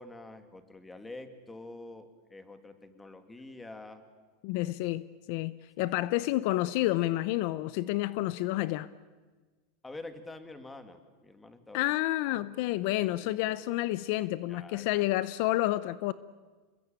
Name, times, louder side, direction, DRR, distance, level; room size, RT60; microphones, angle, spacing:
voice 1, 0.0-4.0 5.8-6.1 9.8-11.8 13.0-13.6 14.5-15.1, left 2 dB, 10° left, 2.4 m, -47 dB
voice 2, 4.4-8.9 11.7-16.1, left 17 dB, 60° left, 0.8 m, -29 dB
28.0 x 21.0 x 9.0 m
supercardioid pair, 140°, 0 cm